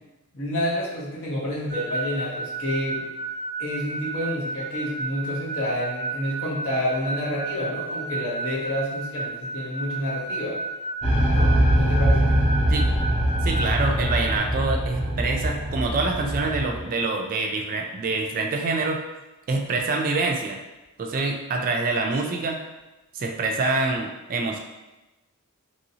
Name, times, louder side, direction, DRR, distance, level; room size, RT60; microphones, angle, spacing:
voice 1, 0.3-3.0 3.6-10.6 11.3-12.3, left 1 dB, 60° left, -6 dB, 1.1 m, -29 dB
sound 1, 1.7-14.4, right 3 dB, 85° left, 1.5 m, -33 dB
sound 2, 11.0-16.8, equal, 25° left, 0.6 m, -22 dB
voice 2, 13.4-19.0 19.5-20.6 21.0-22.6 23.1-24.6, right 3 dB, 40° right, 2 dB, 0.3 m, -26 dB
3.0 x 2.7 x 2.7 m, 1.0 s
head